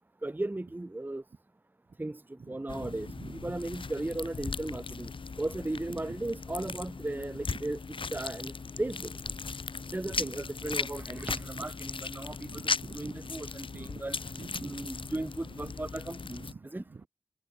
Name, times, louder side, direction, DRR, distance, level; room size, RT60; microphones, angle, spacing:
voice 1, 0.2-1.2 2.0-2.2 2.5-3.1 3.4-5.1 5.4-7.8 8.1-8.5 8.8-9.1 9.9-12.6 12.9-14.2 14.6-16.4 16.7-16.8, right 2 dB, 20° right, 0.6 m, -36 dB
voice 2, 2.4-3.5 6.1-6.2 6.7-6.8 7.5-7.6 10.1-10.4 11.6-11.7 12.3-13.3 13.7-14.0 14.3-14.9 15.4-15.7 16.3-17.1, right 4 dB, 90° right, 2.8 m, -47 dB
sound 1, 2.7-16.5, left 4 dB, 70° left, 0.6 m, -38 dB
wide cardioid pair, 55°, 9 cm